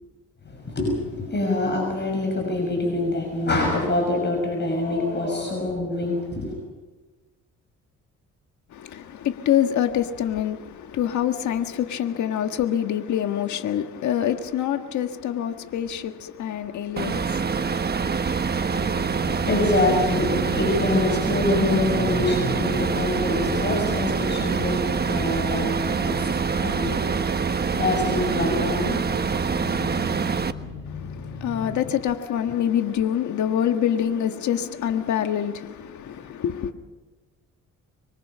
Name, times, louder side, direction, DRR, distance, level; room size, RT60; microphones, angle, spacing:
voice 1, 0.4-6.6 18.7-31.8, left 2 dB, 35° left, 6.4 m, -26 dB
voice 2, 8.7-18.3 30.9-36.7, left 10 dB, 70° left, 1.6 m, -26 dB
sound 1, 17.0-30.5, right 5 dB, 35° right, 1.2 m, -25 dB
26.0 x 23.0 x 5.7 m
cardioid pair, 90°, 30 cm